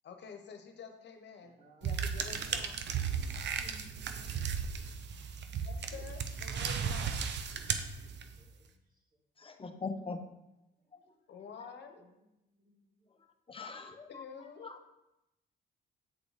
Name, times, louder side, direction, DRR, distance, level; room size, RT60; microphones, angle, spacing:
voice 1, 0.0-2.7 5.6-7.2 11.3-12.0 14.1-14.7, left 6 dB, 60° left, 6 dB, 1.1 m, -49 dB
voice 2, 1.4-2.5 3.1-4.3 8.4-8.8 12.0-12.1 12.4-12.9, equal, 45° right, -2 dB, 2.3 m, -61 dB
sound 1, 1.8-8.5, right 6 dB, 65° right, 0.7 m, -35 dB
voice 3, 9.4-10.2 13.5-14.2 14.6-14.8, left 4 dB, 25° left, 6 dB, 0.9 m, -41 dB
8.6 x 3.9 x 5.0 m, 0.89 s
cardioid pair, 90°, 20 cm